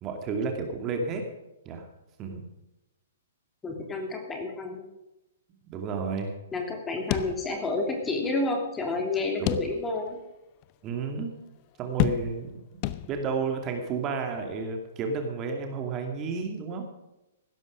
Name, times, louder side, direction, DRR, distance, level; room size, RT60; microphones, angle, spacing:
voice 1, 0.0-1.2 1.6-1.9 2.2-2.4 5.7-6.3 9.4-9.6 10.8-11.3 11.8-12.5 13.1-16.9, right 4 dB, 30° right, 4 dB, 2.5 m, -31 dB
voice 2, 3.6-4.9 6.5-10.2, left 2 dB, 15° left, 2 dB, 3.2 m, -30 dB
sound 1, 7.1-8.0 8.3-8.4 9.5-10.1 10.6-10.7 12.0-12.6 12.8-13.5, left 15 dB, 40° left, 0.7 m, -30 dB
16.0 x 12.5 x 5.1 m, 0.94 s
figure-of-eight pair, 120°, 0 cm